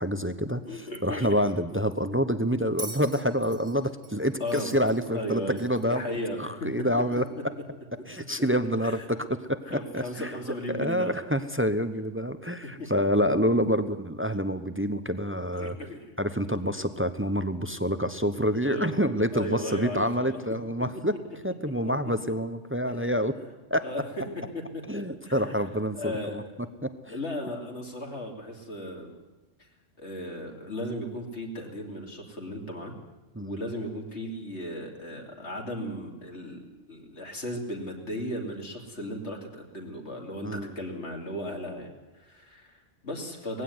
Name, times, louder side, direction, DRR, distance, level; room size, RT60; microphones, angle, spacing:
voice 1, 0.0-6.0 6.4-7.3 8.1-10.3 10.7-15.8 16.2-21.1 21.4-23.4 23.7-23.9 24.9-26.4 26.8-27.1 33.3-33.6 40.4-40.7, equal, 10° right, 10 dB, 0.8 m, -27 dB
voice 2, 0.7-1.4 4.4-4.7 5.1-5.6 5.9-6.9 8.8-9.0 9.6-11.2 12.6-12.7 15.5-16.1 18.6-19.1 19.3-20.4 21.8-21.9 23.0-23.1 23.8-24.2 24.9-25.5 26.0-26.4 27.1-29.2 29.6-29.7 30.0-32.9 33.4-43.6, equal, 65° left, 1 dB, 3.2 m, -36 dB
Bell, 2.8-6.0 7.1-7.2, right 2 dB, 45° right, 2.3 m, -43 dB
19.0 x 16.0 x 9.6 m, 1.1 s
omnidirectional pair, 1.2 m